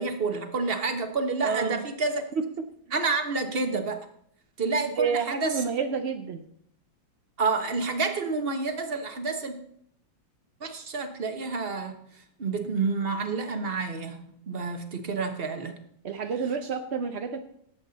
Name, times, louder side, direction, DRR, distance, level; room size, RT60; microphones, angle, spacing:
voice 1, 0.0-2.3 2.9-4.0 4.6-5.5 7.4-9.6 10.6-12.0 12.4-14.2 14.5-15.8, right 4 dB, 35° right, 6 dB, 1.2 m, -29 dB
voice 2, 1.4-1.8 2.4-2.5 5.0-6.4 16.0-17.4, right 5 dB, 60° right, 6 dB, 0.7 m, -29 dB
17.5 x 8.1 x 4.1 m, 0.68 s
omnidirectional pair, 2.1 m